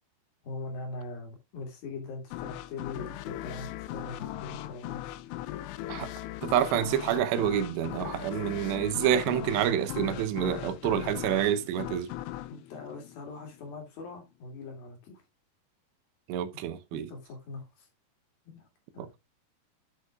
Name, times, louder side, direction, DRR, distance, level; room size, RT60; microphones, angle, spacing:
voice 1, 0.4-5.0 12.5-15.2 16.5-16.6 16.9-17.9 18.5-18.7 18.9-19.1, left 3 dB, 60° left, 4.0 m, -42 dB
sound 1, 2.3-13.8, left 13 dB, 85° left, 2.8 m, -39 dB
voice 2, 6.4-12.1 16.3-17.0, right 10 dB, 85° right, 3.0 m, -28 dB
11.5 x 6.5 x 2.4 m
omnidirectional pair, 4.9 m